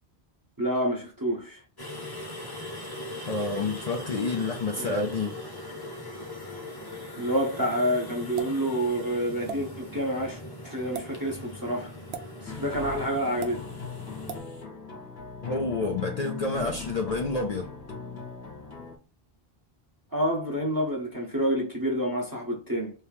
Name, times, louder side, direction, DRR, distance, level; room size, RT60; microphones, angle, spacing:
voice 1, 0.6-1.6 4.8-4.9 7.2-10.4 10.6-11.9 12.4-13.6 20.1-22.9, equal, 20° right, 0.8 m, -28 dB
sound 1, 1.8-14.4, left 1 dB, 25° left, 0.9 m, -40 dB
voice 2, 3.3-5.3 15.4-17.7, left 3 dB, 50° left, 0.5 m, -29 dB
sound 2, 8.4-8.6 9.5-9.6 10.8-11.1 12.1-12.3 13.4-13.6 14.3-14.5, right 6 dB, 75° right, 0.9 m, -35 dB
sound 3, 12.5-19.0, left 5 dB, 75° left, 1.4 m, -39 dB
3.2 x 2.7 x 3.4 m
omnidirectional pair, 1.1 m